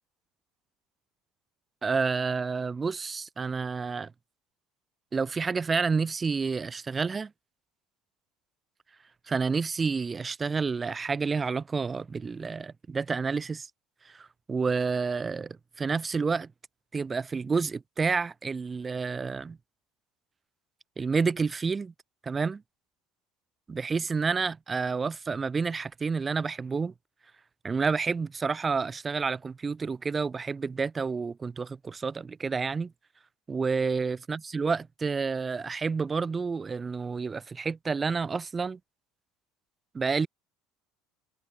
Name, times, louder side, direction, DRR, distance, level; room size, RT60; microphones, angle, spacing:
voice 1, 1.8-4.1 5.1-7.3 9.3-13.7 14.1-16.5 16.9-19.6 21.0-21.9 22.2-22.6 23.7-26.9 27.6-32.9 33.5-38.8 39.9-40.3, right 5 dB, 25° right, 0.4 m, -29 dB
figure-of-eight pair, 60°, 0 cm